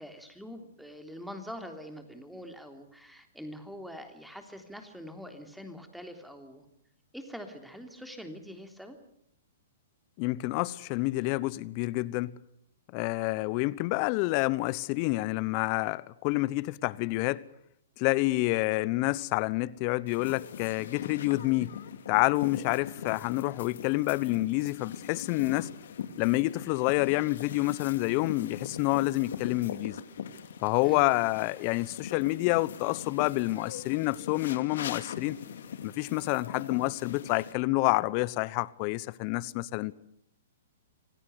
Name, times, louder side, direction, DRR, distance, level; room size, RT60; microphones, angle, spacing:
voice 1, 0.0-6.7 7.1-9.0 30.8-31.1, equal, ahead, 3.3 m, -44 dB
voice 2, 10.2-12.4 12.9-17.4 18.0-21.7 22.1-25.7 26.2-30.0 30.6-35.4 35.8-40.0, left 21 dB, 40° left, 0.9 m, -28 dB
sound 1, 20.1-37.5, left 8 dB, 65° left, 2.3 m, -41 dB
26.0 x 17.0 x 8.2 m
hypercardioid pair, 120°, 0 cm